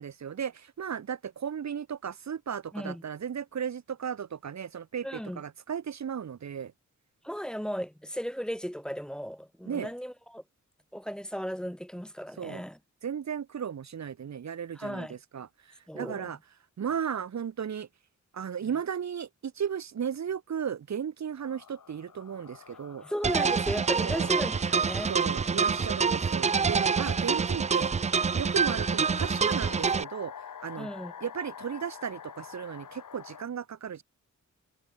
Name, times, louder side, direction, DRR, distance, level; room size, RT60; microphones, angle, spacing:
voice 1, 0.0-6.7 9.7-9.9 12.4-12.6 13.0-16.4 16.8-17.9 18.3-23.0 24.0-24.3 25.1-27.9 28.3-30.3 30.6-30.9 31.2-34.0, right 8 dB, 60° right, 1.4 m, -35 dB
voice 2, 5.0-5.4 7.2-10.4 10.9-12.8 14.8-15.2 15.9-16.3 23.0-25.1 26.5-26.8 30.8-31.1, equal, ahead, 2.0 m, -35 dB
sound 1, 21.4-33.4, left 8 dB, 85° left, 7.3 m, -47 dB
sound 2, 23.2-30.0, right 5 dB, 25° right, 0.3 m, -26 dB
wide cardioid pair, 145°, 31 cm